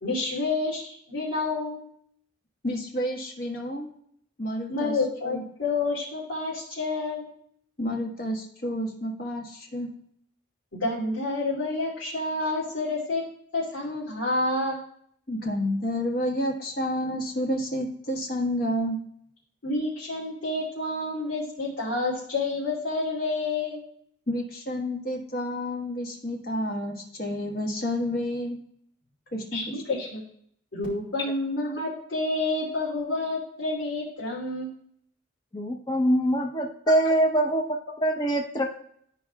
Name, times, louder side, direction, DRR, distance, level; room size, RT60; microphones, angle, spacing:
voice 1, 0.0-1.9 4.7-7.3 10.7-13.2 13.5-14.8 19.6-23.8 29.5-30.2 30.7-34.7 37.0-37.1, left 2 dB, 85° left, -9 dB, 2.6 m, -29 dB
voice 2, 2.6-3.9 4.4-5.0 5.2-5.4 7.8-9.9 15.3-19.0 24.3-28.6 29.3-29.7, equal, 50° left, 1 dB, 1.4 m, -30 dB
voice 3, 35.5-38.7, right 1 dB, 20° left, 2 dB, 0.7 m, -24 dB
12.5 x 4.7 x 2.3 m, 0.68 s
head